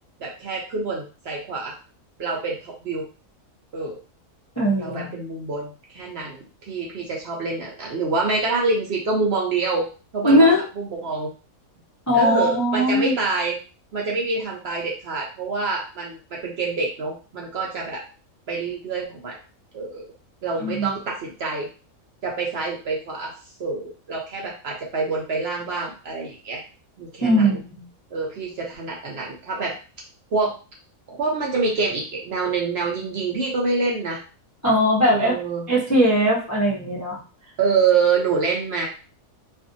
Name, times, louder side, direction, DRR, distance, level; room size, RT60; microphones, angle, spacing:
voice 1, 0.2-1.7 2.2-3.1 3.7-4.0 4.8-9.9 10.1-10.5 10.8-11.3 12.1-13.6 13.9-18.0 18.5-19.4 19.7-20.0 20.4-21.7 22.2-23.3 23.6-26.6 27.0-27.6 28.1-29.7 30.3-30.6 31.1-34.2 35.1-35.7 37.6-38.9, right 4 dB, 60° right, -1 dB, 0.7 m, -26 dB
voice 2, 4.6-5.1 10.2-10.6 12.1-13.2 20.6-20.9 27.2-27.8 34.6-35.4 35.7-37.2, equal, 25° left, -5 dB, 0.3 m, -19 dB
2.5 x 2.5 x 2.6 m, 0.35 s
omnidirectional pair, 1.5 m